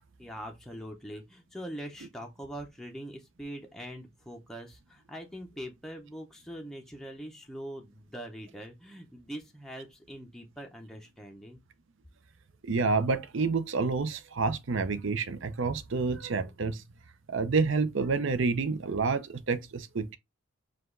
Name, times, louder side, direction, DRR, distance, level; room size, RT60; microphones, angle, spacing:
voice 1, 0.2-11.6, equal, ahead, 0.6 m, -43 dB
voice 2, 12.7-16.8 17.3-20.2, right 4 dB, 60° right, 0.6 m, -28 dB
4.9 x 2.3 x 3.7 m
head